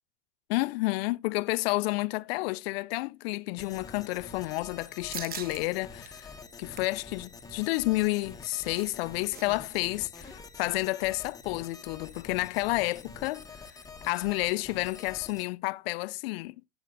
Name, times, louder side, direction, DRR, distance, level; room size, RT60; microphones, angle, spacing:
voice 1, 0.5-6.3 6.6-13.6 14.0-16.6, left 22 dB, 60° left, 0.4 m, -30 dB
sound 1, 3.6-15.4, left 4 dB, 10° left, 0.9 m, -47 dB
sound 2, 5.1-5.6 6.0-6.1 6.5-7.0 8.3-9.4 9.7-9.8 10.2-10.4, right 8 dB, 25° right, 0.7 m, -42 dB
13.0 x 8.8 x 2.6 m
hypercardioid pair, 100°, 35 cm